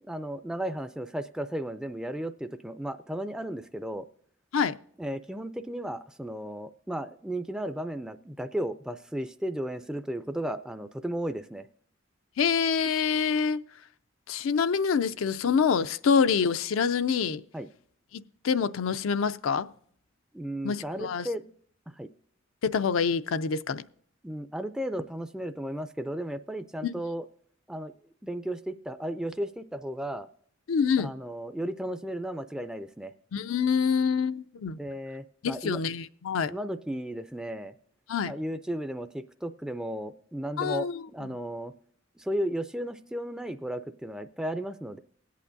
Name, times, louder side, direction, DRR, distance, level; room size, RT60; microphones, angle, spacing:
voice 1, 0.0-4.1 5.0-11.7 15.8-15.9 17.5-17.7 20.3-21.5 21.9-22.1 24.2-27.2 27.7-27.9 28.2-30.3 31.0-33.1 34.8-35.8 36.5-37.7 38.3-41.7 42.2-45.0, right 1 dB, 5° right, 0.3 m, -34 dB
voice 2, 12.4-13.6 14.3-17.4 18.1-19.7 20.6-21.3 22.6-23.8 26.8-26.9 30.7-31.1 33.3-34.8 35.4-36.5 38.1-38.3 40.6-41.0, left 6 dB, 90° left, 0.4 m, -26 dB
20.0 x 8.4 x 2.6 m
head